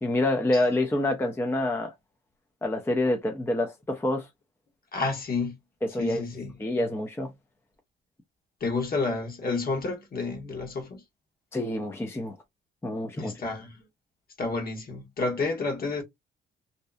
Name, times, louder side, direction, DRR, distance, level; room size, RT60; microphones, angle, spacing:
voice 1, 0.0-1.9 2.6-4.3 5.9-6.2 6.6-7.3 11.5-12.3 12.8-13.3, left 1 dB, 10° left, 0.5 m, -27 dB
voice 2, 4.9-5.5 6.0-6.5 8.6-11.0 13.1-13.8 14.4-16.0, left 3 dB, 50° left, 1.1 m, -30 dB
2.7 x 2.2 x 2.2 m
cardioid pair, 90°, 20 cm